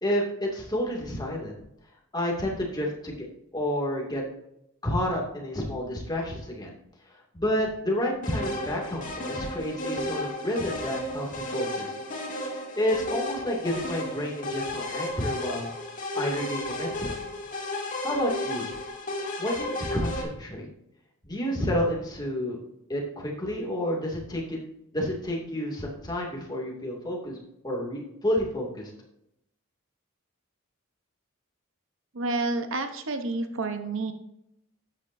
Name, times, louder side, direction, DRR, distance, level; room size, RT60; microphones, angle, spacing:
voice 1, 0.0-1.6 2.1-3.3 3.5-4.2 4.8-6.7 7.3-11.9 12.8-15.7 16.1-17.1 18.0-18.7 19.4-20.7 21.2-22.6 22.9-24.6 24.9-27.4 27.6-28.9, equal, 20° left, -2 dB, 2.3 m, -30 dB
sound 1, 8.2-20.2, left 1 dB, 40° left, 2.4 m, -33 dB
voice 2, 32.1-34.1, right 3 dB, 65° right, 7 dB, 0.9 m, -29 dB
12.0 x 8.8 x 2.6 m, 0.81 s
head